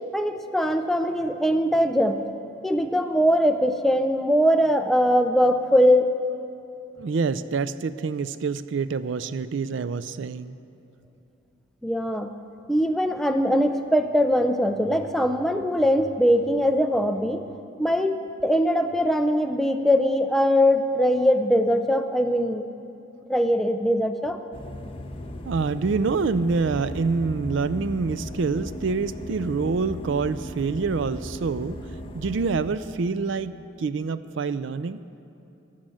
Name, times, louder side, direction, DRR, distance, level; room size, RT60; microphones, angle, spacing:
voice 1, 0.1-2.2 2.6-6.1 11.8-12.3 12.7-17.4 17.8-18.1 18.4-22.6 23.3-24.4, equal, ahead, 5 dB, 0.5 m, -21 dB
voice 2, 7.0-10.6 25.4-31.8 32.1-33.5 33.8-35.0, right 4 dB, 65° right, 14 dB, 0.4 m, -26 dB
sound 1, 24.5-32.5, left 1 dB, 25° left, 0.8 m, -37 dB
13.5 x 10.0 x 7.7 m, 2.8 s
head